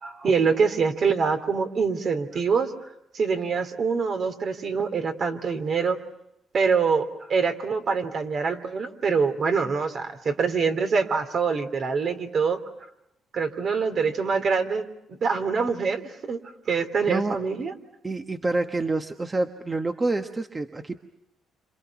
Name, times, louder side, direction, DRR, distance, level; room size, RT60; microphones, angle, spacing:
voice 1, 0.0-2.7 3.1-6.0 6.5-12.6 13.3-16.4 16.7-17.7, right 5 dB, 55° right, 7 dB, 2.9 m, -25 dB
voice 2, 18.0-21.0, right 2 dB, 25° right, 6 dB, 1.2 m, -27 dB
29.5 x 27.0 x 6.0 m, 0.80 s
cardioid pair, 90°, 0 cm